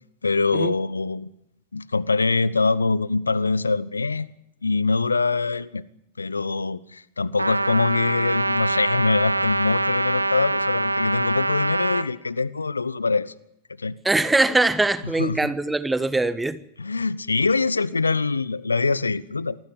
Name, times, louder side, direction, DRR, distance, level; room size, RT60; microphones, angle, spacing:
voice 1, 0.2-1.3 1.7-4.3 4.6-5.8 6.2-13.3 13.8-13.9 15.2-15.4 16.8-19.6, left 4 dB, 80° left, 0.8 m, -24 dB
Trumpet, 7.4-12.1, right 2 dB, 85° right, 1.0 m, -24 dB
voice 2, 14.0-16.6, right 2 dB, 10° right, 1.3 m, -22 dB
27.0 x 20.0 x 7.2 m
figure-of-eight pair, 90°, 0 cm